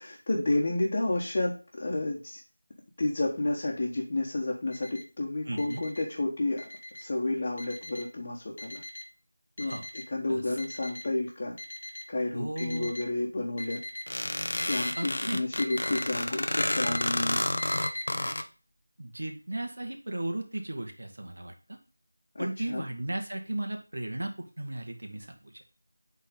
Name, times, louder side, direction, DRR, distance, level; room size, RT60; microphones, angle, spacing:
voice 1, 0.0-2.4 3.0-6.7 7.0-8.8 9.6-9.7 10.1-11.6 12.1-13.8 14.7-17.4 22.3-22.9, left 2 dB, 35° left, -5 dB, 1.4 m, -31 dB
Alarm, 4.7-5.0 5.6-6.0 6.6-7.0 7.6-8.0 8.6-9.0 9.6-10.0 10.6-11.0 11.6-12.0 12.6-13.0 13.6-14.0 14.6-15.0 15.6-16.0 16.6-17.0 17.6-18.0, left 1 dB, 55° left, 1.6 m, -39 dB
voice 2, 5.5-5.8 9.6-9.8 10.3-10.4 12.3-12.9 15.0-15.4 18.2-18.5 19.0-21.8 22.4-24.3 24.6-25.5, right 1 dB, 70° right, 4 dB, 1.8 m, -35 dB
sound 1, 14.1-18.4, left 1 dB, 75° left, 0.8 m, -30 dB
8.3 x 4.1 x 3.8 m, 0.33 s
figure-of-eight pair, 175°, 0 cm